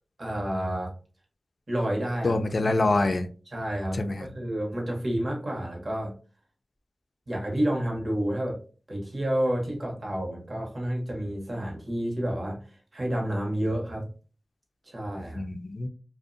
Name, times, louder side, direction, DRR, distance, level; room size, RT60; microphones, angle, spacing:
voice 1, 0.2-0.9 1.7-2.4 3.5-6.1 7.3-8.6 8.9-14.1 14.8-15.4, right 1 dB, 50° right, -1 dB, 0.9 m, -30 dB
voice 2, 2.2-3.3 3.9-4.3 15.4-15.9, left 2 dB, 55° left, 8 dB, 0.3 m, -25 dB
2.5 x 2.0 x 2.5 m, 0.37 s
cardioid pair, 50°, 0 cm